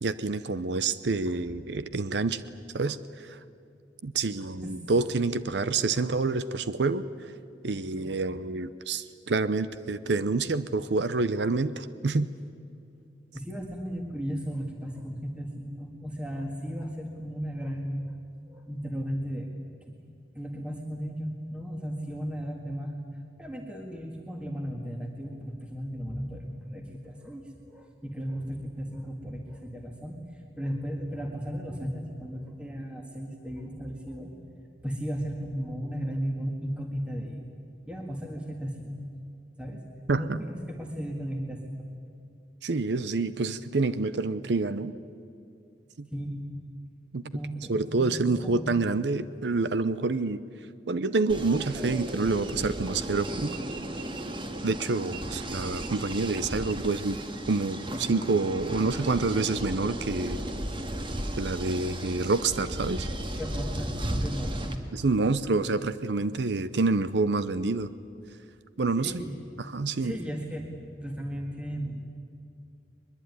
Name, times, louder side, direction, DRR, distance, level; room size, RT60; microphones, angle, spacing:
voice 1, 0.0-2.4 2.7-3.4 4.0-7.3 7.6-12.3 40.1-40.4 42.6-44.9 46.0-46.1 47.1-47.2 47.7-50.4 50.9-53.6 54.6-57.2 57.5-60.4 61.4-63.1 64.9-67.9 68.8-69.1 69.6-70.2, right 3 dB, 65° right, 14 dB, 0.7 m, -27 dB
voice 2, 13.3-18.2 18.5-20.0 20.4-23.0 23.4-34.3 34.8-37.4 37.9-39.0 39.6-39.8 40.1-41.8 46.1-46.5 47.3-48.7 63.3-63.9 64.2-64.8 69.0-69.3 70.0-70.7 71.0-72.0, equal, 5° right, 1 dB, 1.8 m, -35 dB
sound 1, 51.3-64.8, right 1 dB, 30° right, 1.8 m, -35 dB
22.0 x 22.0 x 9.5 m, 2.5 s
head